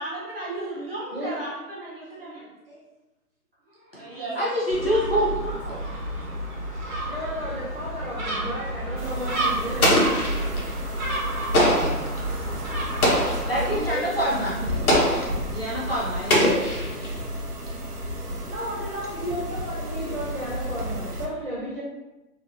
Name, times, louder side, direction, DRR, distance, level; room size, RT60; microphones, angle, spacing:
voice 1, 0.0-2.8 3.7-5.9 6.6-6.8, right 2 dB, 40° right, -6 dB, 0.9 m, -36 dB
voice 2, 1.1-1.4 6.7-10.3 11.5-12.1 13.5-14.8 18.1-21.8, equal, 5° left, -23 dB, 0.7 m, -34 dB
voice 3, 4.3-5.3 13.4-14.5 15.5-16.5, equal, 40° left, -6 dB, 0.5 m, -25 dB
Gull seagull, 4.7-13.8, right 1 dB, 65° right, 1.1 m, -31 dB
sound 1, 9.0-21.3, equal, 80° right, 0.8 m, -32 dB
Explosion, 9.8-10.7 11.5-12.1 13.0-13.6 14.9-15.4 16.3-17.2, left 1 dB, 65° left, 1.0 m, -21 dB
3.0 x 2.6 x 2.4 m, 1.0 s
hypercardioid pair, 165°, 46 cm